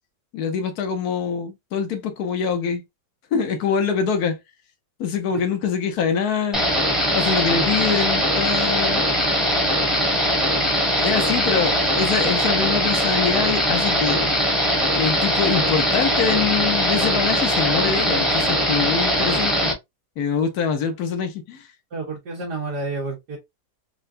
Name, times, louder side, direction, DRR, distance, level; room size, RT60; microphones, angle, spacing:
voice 1, 0.3-2.8 3.3-4.4 5.0-6.6 7.1-9.0 10.6-10.7 11.0-14.3 15.0-19.8 20.2-21.7, left 6 dB, 65° left, 1.3 m, -24 dB
sound 1, 6.5-19.7, equal, ahead, 1.0 m, -21 dB
voice 2, 21.9-23.4, right 3 dB, 75° right, 1.8 m, -29 dB
4.5 x 2.4 x 2.5 m
omnidirectional pair, 1.8 m